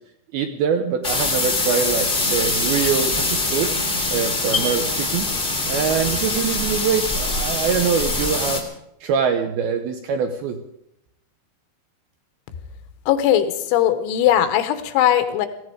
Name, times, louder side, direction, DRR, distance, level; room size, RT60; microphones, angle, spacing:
voice 1, 0.3-3.7 4.1-5.3 5.7-8.6 9.0-10.6, right 7 dB, 80° right, 6 dB, 2.3 m, -23 dB
sound 1, 1.0-8.6, left 2 dB, 55° left, 0.5 m, -23 dB
voice 2, 13.1-15.5, left 11 dB, 85° left, 10 dB, 3.5 m, -19 dB
17.5 x 15.5 x 5.0 m, 0.80 s
omnidirectional pair, 5.4 m